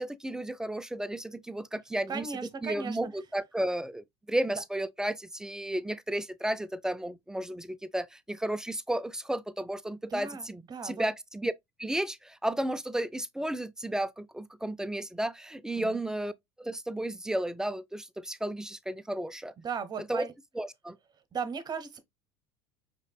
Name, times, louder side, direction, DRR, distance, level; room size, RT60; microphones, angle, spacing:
voice 1, 0.0-2.3 2.6-11.5 11.8-16.3 16.6-19.5 20.0-20.3 20.6-21.0, right 1 dB, 5° right, 0.4 m, -33 dB
voice 2, 2.1-3.1 10.1-11.1 15.8-16.0 19.6-20.3 21.3-22.0, right 6 dB, 30° right, 1.0 m, -36 dB
5.2 x 3.7 x 2.2 m
hypercardioid pair, 80°, 14 cm